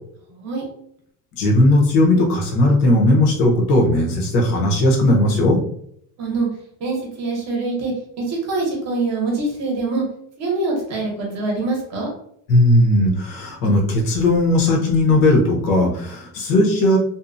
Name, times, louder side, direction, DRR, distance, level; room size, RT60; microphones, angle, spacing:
voice 1, 0.3-0.6 6.2-6.5 6.8-10.0 10.4-12.1, right 3 dB, 35° right, -1 dB, 0.7 m, -24 dB
voice 2, 1.4-5.6 12.5-17.0, left 1 dB, 75° left, -1 dB, 0.9 m, -17 dB
2.7 x 2.0 x 2.5 m, 0.69 s
cardioid pair, 165°, 46 cm